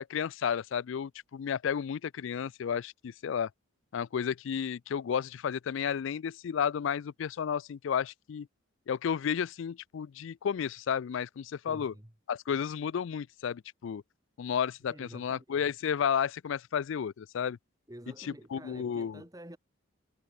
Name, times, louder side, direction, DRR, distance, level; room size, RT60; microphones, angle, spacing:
voice 1, 0.0-3.5 3.9-8.5 8.9-11.9 12.3-14.0 14.4-17.6 18.2-19.2, left 7 dB, 65° left, 0.3 m, -32 dB
voice 2, 11.7-12.1 14.9-15.6 17.9-19.6, right 1 dB, 15° right, 1.7 m, -49 dB
head